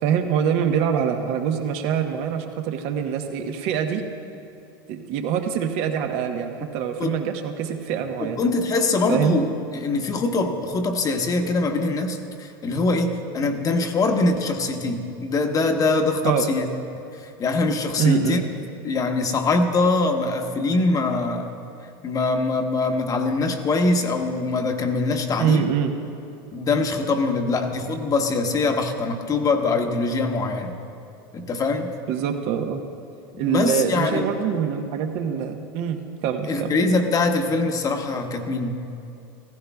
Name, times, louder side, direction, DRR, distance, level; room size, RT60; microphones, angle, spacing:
voice 1, 0.0-4.0 4.9-8.4 9.1-9.3 16.2-16.5 18.0-18.4 25.4-25.9 32.1-32.8 33.4-36.7, right 8 dB, 60° right, 6 dB, 1.0 m, -24 dB
voice 2, 8.2-16.7 17.2-18.4 18.8-21.5 22.0-25.7 26.5-30.7 31.3-31.9 33.4-34.3 36.5-38.8, left 3 dB, 30° left, 5 dB, 1.1 m, -23 dB
15.0 x 15.0 x 2.3 m, 2.7 s
hypercardioid pair, 100°, 12 cm